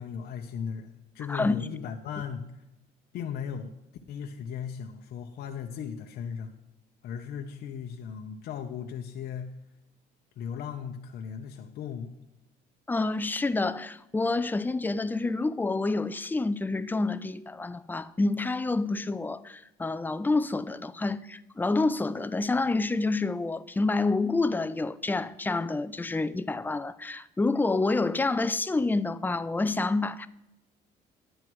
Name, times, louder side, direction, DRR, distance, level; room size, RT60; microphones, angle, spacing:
voice 1, 0.0-2.4 3.1-3.7 4.1-6.5 7.0-9.5 10.4-12.1, left 7 dB, 65° left, 0.8 m, -37 dB
voice 2, 1.3-1.6 12.9-30.3, left 3 dB, 10° left, 0.4 m, -28 dB
11.0 x 7.9 x 4.6 m
cardioid pair, 110°, 17 cm